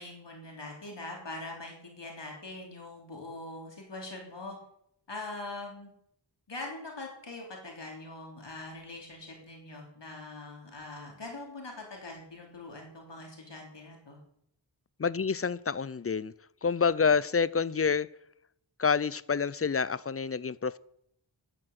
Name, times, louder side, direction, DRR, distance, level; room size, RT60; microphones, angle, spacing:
voice 1, 0.0-4.6 5.1-5.9 6.5-14.2, left 2 dB, 65° left, 0 dB, 3.6 m, -42 dB
voice 2, 15.0-16.3 16.6-18.1 18.8-20.8, left 5 dB, 30° left, 20 dB, 0.5 m, -28 dB
11.5 x 9.1 x 8.1 m, 0.73 s
wide cardioid pair, 75°, 45 cm